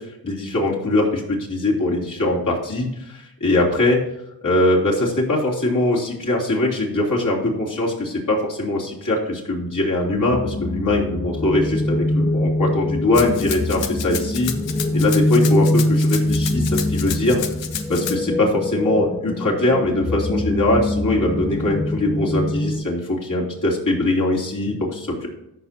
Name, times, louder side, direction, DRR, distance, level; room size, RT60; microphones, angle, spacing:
voice 1, 0.2-4.0 4.4-14.5 14.9-17.4 17.9-25.3, left 1 dB, 45° left, -3 dB, 3.2 m, -21 dB
sound 1, 10.1-22.8, left 1 dB, 10° left, 0.4 m, -23 dB
Rattle (instrument), 13.1-18.2, left 9 dB, 90° left, 0.8 m, -31 dB
14.0 x 5.8 x 2.9 m, 0.87 s
cardioid pair, 50°, 43 cm